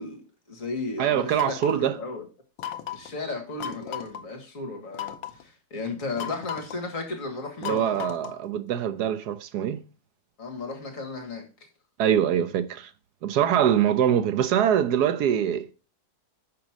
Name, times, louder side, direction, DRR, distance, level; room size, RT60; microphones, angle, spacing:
voice 1, 0.0-2.3 2.9-8.1 10.4-11.4, left 3 dB, 45° left, 2.1 m, -34 dB
voice 2, 1.0-1.9 7.6-9.8 12.0-12.9 13.2-15.7, right 9 dB, 70° right, 1.1 m, -23 dB
sound 1, 1.4-1.9 2.6-3.1 3.6-4.2 4.9-5.4 6.2-6.8 7.6-8.5, left 10 dB, 85° left, 1.4 m, -36 dB
6.2 x 5.1 x 6.0 m
omnidirectional pair, 2.0 m